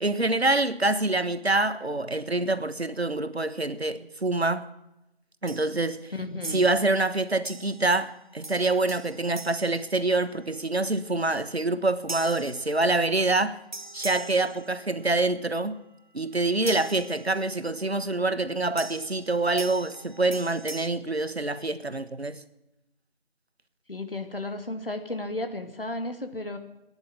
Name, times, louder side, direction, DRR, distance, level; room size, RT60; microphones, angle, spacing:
voice 1, 0.0-4.7 5.4-6.1 6.5-13.6 13.9-15.8 16.1-22.4, right 2 dB, 85° right, 1.3 m, -26 dB
sound 1, 5.5-5.9 6.4-7.0 7.5-8.0 8.4-10.6 12.1-13.3 13.7-15.2 16.7-17.7 18.8-20.9, right 2 dB, 50° right, 1.2 m, -42 dB
voice 2, 6.1-6.7 17.5-17.7 23.9-26.6, left 2 dB, 65° left, 2.4 m, -34 dB
15.5 x 10.5 x 8.9 m
figure-of-eight pair, 170°, 31 cm